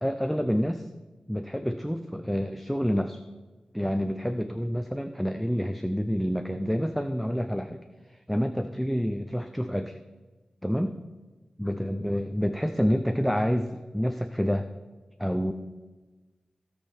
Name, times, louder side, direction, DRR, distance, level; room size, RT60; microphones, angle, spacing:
voice 1, 0.0-0.9 1.3-3.2 3.7-7.8 8.1-10.0 10.6-10.9 11.6-14.7 15.2-15.5, equal, ahead, 8 dB, 0.5 m, -28 dB
16.0 x 6.0 x 4.1 m, 1.3 s
wide cardioid pair, 80°, 2 cm